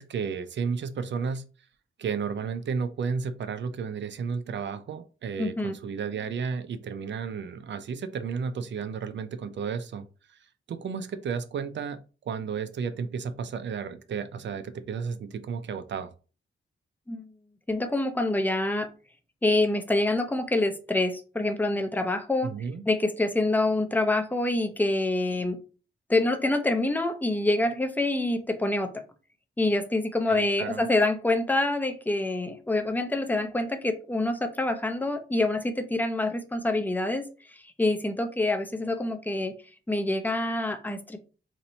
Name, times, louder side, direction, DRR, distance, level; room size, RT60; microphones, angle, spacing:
voice 1, 0.0-1.5 2.0-10.4 10.7-16.1 22.4-22.8 30.3-30.9, right 6 dB, 60° right, 11 dB, 0.5 m, -33 dB
voice 2, 5.4-5.8 17.1-17.3 17.7-18.9 19.4-22.5 22.9-25.6 26.1-29.0 29.6-37.2 37.5-39.5 39.9-41.2, left 2 dB, 10° left, 7 dB, 0.5 m, -26 dB
2.8 x 2.6 x 4.2 m, 0.35 s
wide cardioid pair, 120°, 21 cm